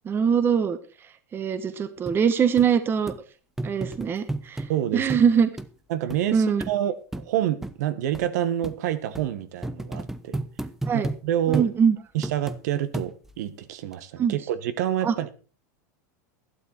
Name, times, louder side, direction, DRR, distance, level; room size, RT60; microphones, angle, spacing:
voice 1, 0.0-0.8 1.3-3.1 3.6-4.6 4.9-5.5 6.3-6.6 10.9-11.1 11.5-12.0 14.2-14.4 15.0-15.1, right 7 dB, 25° right, 1.2 m, -22 dB
sound 1, 2.1-2.2 2.6-2.7 3.1-3.2 3.6-4.7 5.1-5.3 5.6-5.7 6.1-6.2 6.6-6.7 7.1-7.3 7.6-7.8 8.1-8.3 8.6-8.8 9.2-9.3 9.6-11.2 11.5-11.7 12.2-12.6 12.9-13.4 13.9-14.0, right 2 dB, 5° right, 0.8 m, -32 dB
voice 2, 4.7-5.2 5.9-10.4 10.9-11.7 12.1-15.3, right 11 dB, 70° right, 1.5 m, -28 dB
12.0 x 12.0 x 4.5 m
supercardioid pair, 130°, 9 cm